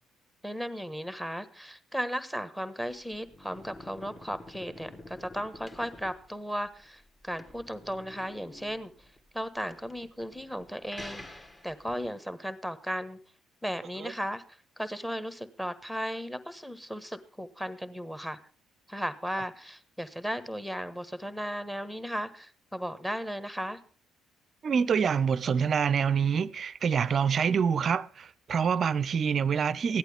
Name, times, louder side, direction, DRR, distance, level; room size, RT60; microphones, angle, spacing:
voice 1, 0.4-8.9 9.3-13.2 13.6-14.4 14.8-18.4 18.9-23.8, equal, 5° left, 1.2 m, -36 dB
sound 1, 2.9-12.1, left 1 dB, 25° left, 1.6 m, -49 dB
voice 2, 24.6-30.0, right 6 dB, 45° right, 0.5 m, -26 dB
15.0 x 11.0 x 3.5 m
figure-of-eight pair, 45°, 0 cm